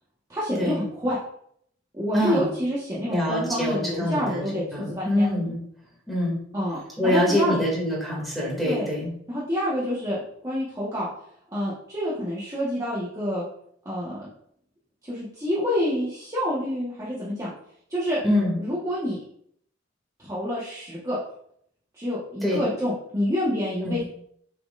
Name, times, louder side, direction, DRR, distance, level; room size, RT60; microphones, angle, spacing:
voice 1, 0.3-1.2 1.9-5.3 6.5-7.6 8.6-8.9 9.3-11.1 11.5-13.4 13.8-14.2 15.1-17.5 17.9-18.2 18.6-19.2 20.2-21.2 21.9-24.0, equal, 15° right, -8 dB, 1.3 m, -27 dB
voice 2, 2.1-2.5 3.1-4.4 4.7-5.6 6.1-6.4 7.0-9.1 18.2-18.6 22.4-22.6 23.8-24.0, left 1 dB, ahead, -4 dB, 2.4 m, -24 dB
6.8 x 6.2 x 2.5 m, 0.69 s
head